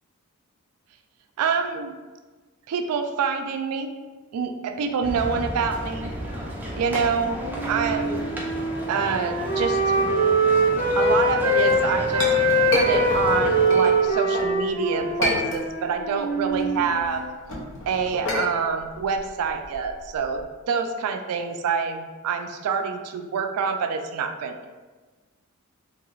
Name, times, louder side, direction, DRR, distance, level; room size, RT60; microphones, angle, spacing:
voice 1, 1.4-2.0 2.7-3.9 4.3-6.1 6.8-7.4 7.7-8.2 8.9-9.8 11.0-12.3 12.7-17.2 17.9-20.4 20.7-24.7, right 5 dB, 75° right, 6 dB, 0.3 m, -26 dB
sound 1, 5.0-13.7, equal, 10° right, 0.4 m, -33 dB
Wind instrument woodwind instrument, 6.9-11.8 12.1-17.4, right 1 dB, 85° left, 1.4 m, -23 dB
Chink clink, 11.7-14.5 15.0-16.0 16.3-20.4, equal, 60° left, 0.6 m, -29 dB
3.0 x 2.9 x 2.3 m, 1.3 s
head